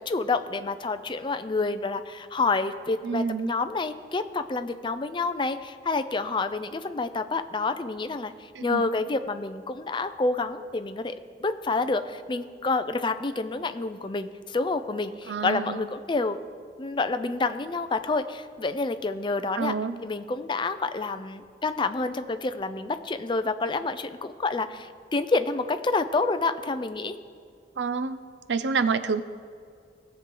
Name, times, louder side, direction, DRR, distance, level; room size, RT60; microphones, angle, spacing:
voice 1, 0.0-16.4 16.8-19.7 20.0-27.2, left 3 dB, 25° left, 10 dB, 0.5 m, -28 dB
voice 2, 3.0-3.5 8.5-8.9 15.3-15.9 19.6-20.0 27.8-28.2 28.5-29.2, right 5 dB, 90° right, 12 dB, 0.6 m, -28 dB
18.5 x 7.2 x 3.8 m, 2.3 s
head